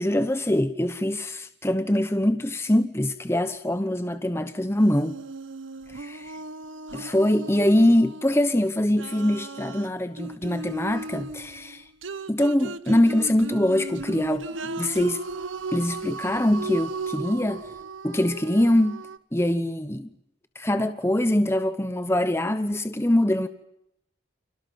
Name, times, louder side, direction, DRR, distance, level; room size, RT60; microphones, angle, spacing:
voice 1, 0.0-5.2 6.9-11.8 12.3-15.2 15.7-17.6 18.0-19.0 19.3-20.1 20.5-23.5, left 1 dB, 15° left, 1.0 m, -23 dB
sound 1, 4.8-8.5 9.0-19.2, right 3 dB, 85° right, 1.1 m, -36 dB
29.5 x 26.5 x 5.7 m
head